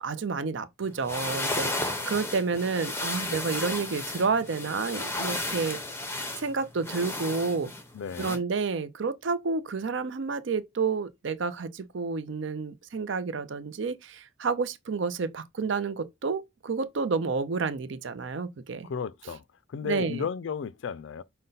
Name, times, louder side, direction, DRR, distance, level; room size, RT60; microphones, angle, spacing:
voice 1, 0.0-7.7 8.2-18.9 19.8-20.3, right 4 dB, 60° right, 0.5 m, -30 dB
sound 1, 0.9-8.4, left 2 dB, 10° left, 0.6 m, -34 dB
voice 2, 7.9-8.4 18.8-19.4 19.7-21.2, left 6 dB, 65° left, 0.3 m, -34 dB
5.3 x 2.2 x 3.8 m
head